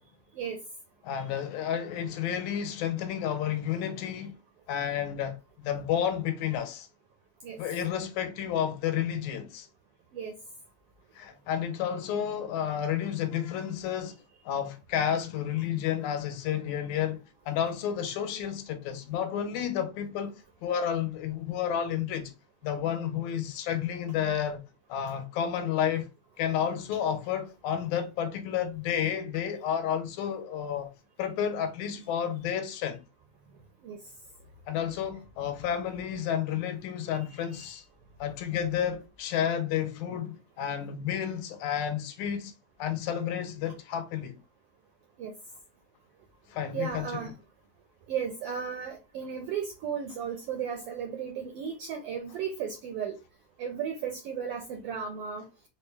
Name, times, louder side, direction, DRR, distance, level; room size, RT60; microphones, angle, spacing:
voice 1, 1.0-4.4 4.7-6.9 7.6-9.7 11.1-14.1 14.5-22.3 22.6-24.6 24.9-26.1 26.4-30.9 31.2-33.0 34.7-37.8 38.2-42.5 42.8-44.4 46.5-47.3, left 9 dB, 80° left, 2.0 m, -31 dB
voice 2, 46.7-47.3 48.1-53.1 53.6-55.4, right 7 dB, 80° right, 1.4 m, -34 dB
4.9 x 2.2 x 3.2 m
omnidirectional pair, 3.4 m